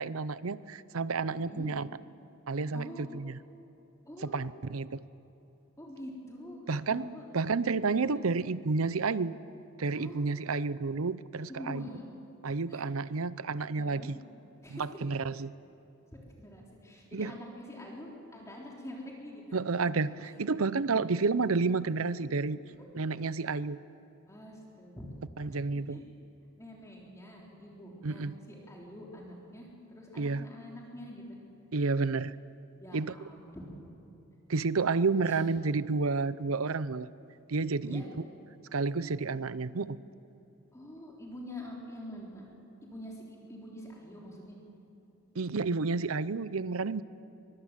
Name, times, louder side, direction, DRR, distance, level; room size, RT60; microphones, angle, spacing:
voice 1, 0.0-1.9 2.5-3.4 4.2-5.0 6.7-9.4 9.8-11.8 12.4-14.2 14.7-15.5 17.1-17.4 19.5-22.6 22.9-23.8 25.4-26.0 28.0-28.4 30.2-30.5 31.7-32.4 32.9-33.1 34.5-37.1 37.5-38.0 38.7-40.0 45.3-47.0, right 4 dB, 90° right, 16 dB, 0.7 m, -30 dB
voice 2, 1.3-1.7 2.7-3.1 4.1-4.4 5.8-6.6 6.9-7.3 7.9-8.2 10.0-10.2 11.5-12.1 12.7-12.9 13.8-14.1 14.6-14.9 16.4-19.6 24.3-26.0 26.6-31.4 32.8-34.0 35.3-35.4 37.8-38.1 40.7-42.4 42.8-44.6, left 1 dB, 15° left, -3 dB, 3.6 m, -45 dB
24.0 x 23.5 x 7.5 m, 3.0 s
head